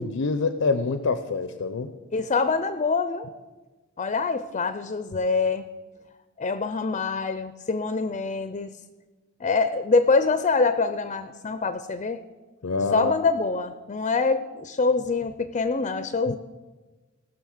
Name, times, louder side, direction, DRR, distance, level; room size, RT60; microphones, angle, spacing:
voice 1, 0.0-1.9 12.6-13.1 16.3-16.4, left 4 dB, 80° left, 11 dB, 0.6 m, -26 dB
voice 2, 2.1-3.3 4.0-5.7 6.4-8.7 9.4-12.2 12.9-16.4, left 4 dB, 35° left, 11 dB, 0.5 m, -25 dB
19.0 x 6.3 x 6.4 m, 1.3 s
head